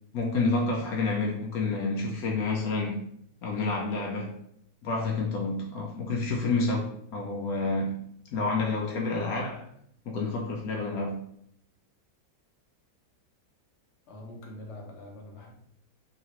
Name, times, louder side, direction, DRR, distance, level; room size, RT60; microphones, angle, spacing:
voice 1, 0.1-3.0 3.4-4.4 4.8-9.7 10.1-11.2, left 3 dB, 75° left, 1.1 m, -29 dB
voice 2, 14.1-15.5, left 1 dB, 55° left, 1.0 m, -44 dB
3.1 x 2.9 x 2.9 m
omnidirectional pair, 1.6 m